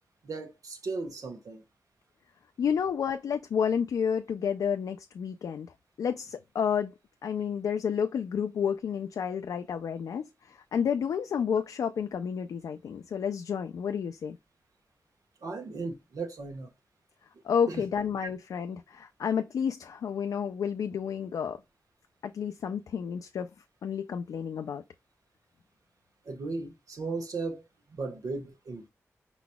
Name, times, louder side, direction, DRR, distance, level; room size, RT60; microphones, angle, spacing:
voice 1, 0.2-1.6 15.4-16.7 17.6-17.9 26.2-27.6 27.9-28.9, right 3 dB, 75° right, 1.1 m, -36 dB
voice 2, 2.6-5.7 6.0-6.9 7.2-14.4 17.4-21.6 22.2-23.5 23.8-24.8, left 7 dB, 85° left, 0.4 m, -30 dB
4.7 x 4.0 x 2.2 m
cardioid pair, 55°, 6 cm